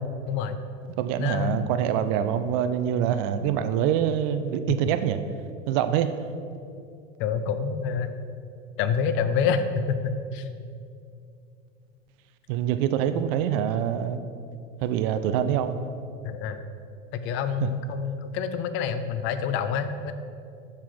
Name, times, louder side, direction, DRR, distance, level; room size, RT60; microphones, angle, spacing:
voice 1, 0.3-0.6 1.2-1.6 7.2-8.1 8.8-10.5 16.2-16.6 17.1-20.1, left 6 dB, 35° left, 10 dB, 0.4 m, -27 dB
voice 2, 1.0-5.2 5.7-6.1 12.5-14.2 14.8-15.8 17.6-17.7, right 9 dB, 45° right, 10 dB, 0.4 m, -25 dB
6.0 x 4.5 x 4.6 m, 2.5 s
figure-of-eight pair, 85°, 39 cm